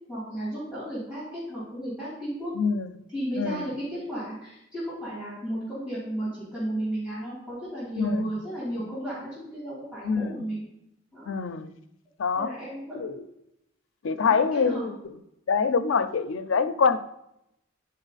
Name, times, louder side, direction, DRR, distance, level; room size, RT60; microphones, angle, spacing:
voice 1, 0.1-2.5 3.1-10.6 11.1-11.3 12.3-13.1 14.2-14.9, right 1 dB, 5° right, -10 dB, 3.1 m, -34 dB
voice 2, 2.5-2.9 3.4-3.7 8.0-8.3 10.0-10.5 11.3-11.7 12.2-12.5 12.9-13.2 14.0-15.0 15.5-17.0, left 5 dB, 75° left, 11 dB, 0.5 m, -25 dB
11.0 x 4.2 x 4.0 m, 0.83 s
head